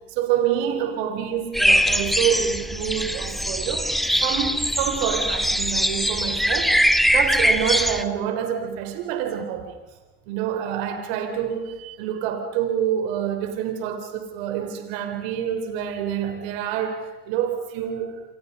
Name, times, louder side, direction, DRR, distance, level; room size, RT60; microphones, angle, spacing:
voice 1, 0.1-3.9 4.2-6.7 7.1-9.8 10.3-18.2, right 9 dB, 75° right, 6 dB, 3.9 m, -27 dB
sound 1, 1.5-8.0, equal, ahead, 1.8 m, -22 dB
28.0 x 27.5 x 5.5 m, 1.2 s
hypercardioid pair, 70°, 30 cm